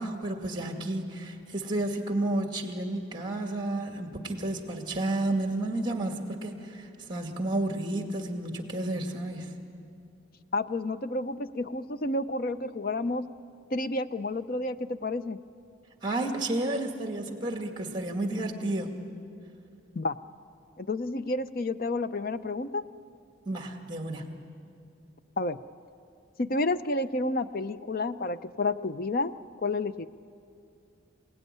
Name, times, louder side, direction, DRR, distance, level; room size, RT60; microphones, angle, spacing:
voice 1, 0.0-9.6 16.0-18.9 23.5-24.4, right 2 dB, 25° right, 4 dB, 2.2 m, -31 dB
voice 2, 10.5-13.2 13.7-15.4 20.0-20.2 20.8-22.8 25.4-25.6 26.4-29.3 29.6-30.1, left 2 dB, 45° left, 13 dB, 0.6 m, -30 dB
27.0 x 17.5 x 10.0 m, 2.5 s
head